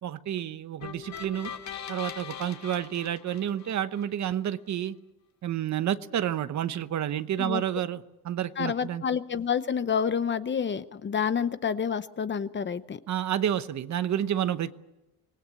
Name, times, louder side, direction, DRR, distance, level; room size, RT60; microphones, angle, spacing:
voice 1, 0.0-1.5 1.9-5.0 5.4-9.0 13.1-14.7, right 10 dB, 50° right, 12 dB, 1.0 m, -30 dB
sound 1, 0.8-4.0, left 8 dB, 50° left, 2.0 m, -41 dB
voice 2, 8.6-13.0, left 7 dB, 30° left, 13 dB, 0.8 m, -28 dB
26.0 x 19.5 x 8.4 m, 1.0 s
cardioid pair, 140°, 37 cm